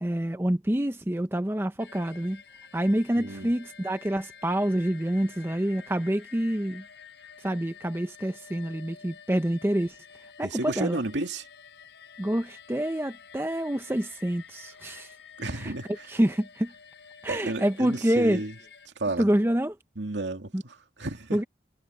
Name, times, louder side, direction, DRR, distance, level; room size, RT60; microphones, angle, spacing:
voice 1, 0.0-2.4 2.7-6.8 7.4-9.9 10.4-11.0 12.2-15.1 15.6-15.7 16.1-16.7 17.2-18.4 19.2-19.7 20.5-20.6 21.3-21.4, right 1 dB, 15° right, 0.6 m, -27 dB
sound 1, 1.8-18.9, left 7 dB, 80° left, 4.1 m, -50 dB
voice 2, 3.2-3.5 10.4-11.5 15.4-16.2 17.3-18.6 19.0-19.3 20.0-21.4, right 2 dB, 85° right, 2.5 m, -32 dB
head